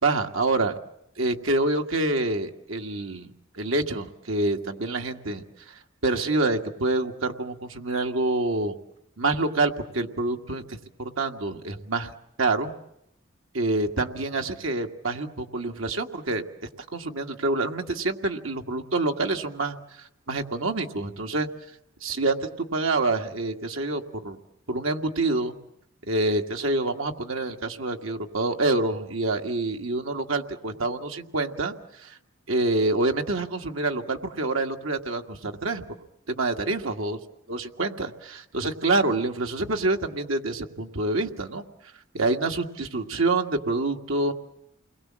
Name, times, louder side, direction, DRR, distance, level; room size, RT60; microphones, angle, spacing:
voice 1, 0.0-0.8 1.2-8.7 9.2-12.1 12.4-12.7 13.5-16.4 16.9-19.8 20.3-21.5 22.0-24.4 24.7-25.6 26.1-32.2 32.5-35.8 36.3-37.2 37.5-41.6 42.1-44.3, right 2 dB, 90° right, 4 dB, 1.9 m, -27 dB
29.5 x 22.0 x 7.5 m, 0.80 s
head